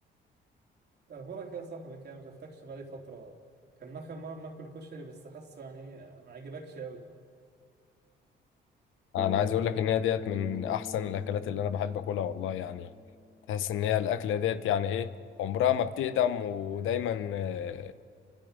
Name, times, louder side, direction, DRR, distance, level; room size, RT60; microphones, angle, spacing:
voice 1, 1.1-3.4 3.8-7.0, right 4 dB, 55° right, 2 dB, 3.1 m, -43 dB
voice 2, 9.1-12.9 13.5-15.1 15.4-17.9, left 9 dB, 85° left, 12 dB, 1.0 m, -29 dB
Bass guitar, 9.2-13.4, left 3 dB, 20° left, 1.5 m, -43 dB
29.5 x 25.5 x 5.2 m, 2.2 s
cardioid pair, 90°, 20 cm